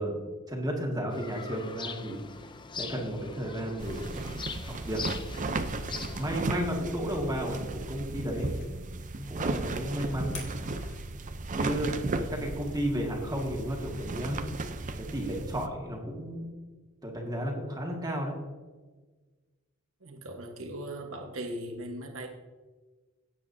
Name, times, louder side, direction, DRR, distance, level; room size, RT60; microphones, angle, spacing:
voice 1, 0.0-2.2 2.7-4.3 4.6-5.2 6.1-8.8 9.1-10.4 11.6-14.4 15.0-16.5 17.0-18.4, equal, 20° right, -1 dB, 1.8 m, -33 dB
sound 1, 1.1-6.4, left 5 dB, 20° left, 0.5 m, -42 dB
sound 2, 3.8-15.7, right 2 dB, 40° right, 0.6 m, -35 dB
sound 3, 5.5-11.6, left 5 dB, 60° left, 2.9 m, -53 dB
voice 2, 20.0-22.3, right 1 dB, 70° right, 3 dB, 1.4 m, -39 dB
17.0 x 8.4 x 2.7 m, 1.3 s
head